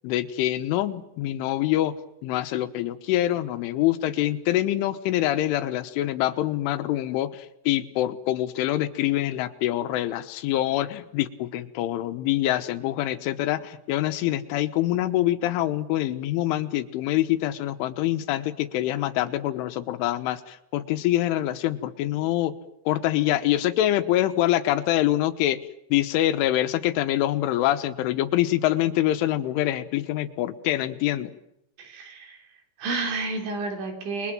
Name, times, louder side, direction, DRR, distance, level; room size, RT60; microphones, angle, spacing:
voice 1, 0.0-2.0 2.2-22.6 22.9-25.6 25.9-31.3, left 14 dB, 90° left, 11 dB, 3.6 m, -25 dB
voice 2, 31.8-32.4 32.8-34.3, right 3 dB, 70° right, 4 dB, 6.2 m, -30 dB
29.0 x 22.0 x 7.6 m, 0.79 s
omnidirectional pair, 5.4 m